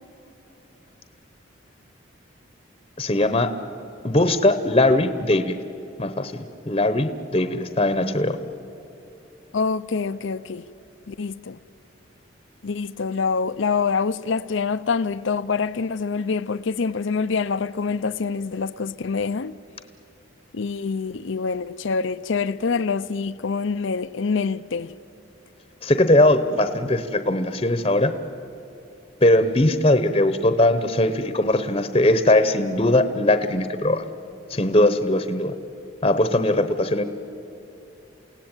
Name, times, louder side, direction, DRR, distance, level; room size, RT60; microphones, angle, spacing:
voice 1, 3.0-3.5 4.0-5.6 6.0-6.3 6.7-8.4 25.8-28.1 29.2-34.0 34.5-35.5 36.0-37.0, left 1 dB, 25° left, 0.9 m, -20 dB
voice 2, 9.5-10.6 11.1-11.6 12.6-19.5 20.5-24.9, left 5 dB, 75° left, 0.6 m, -25 dB
28.5 x 17.5 x 9.0 m
head